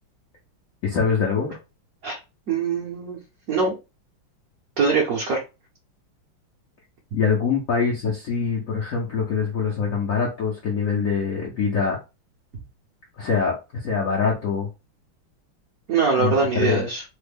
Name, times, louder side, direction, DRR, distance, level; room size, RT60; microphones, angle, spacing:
voice 1, 0.8-1.5 7.1-12.0 13.2-14.7 16.2-16.9, left 5 dB, 70° left, -2 dB, 0.8 m, -24 dB
voice 2, 2.5-3.2 3.5-3.7 4.8-5.4 12.5-12.6 15.9-17.0, right 5 dB, 60° right, -2 dB, 1.0 m, -22 dB
3.4 x 2.1 x 3.3 m, 0.27 s
omnidirectional pair, 2.3 m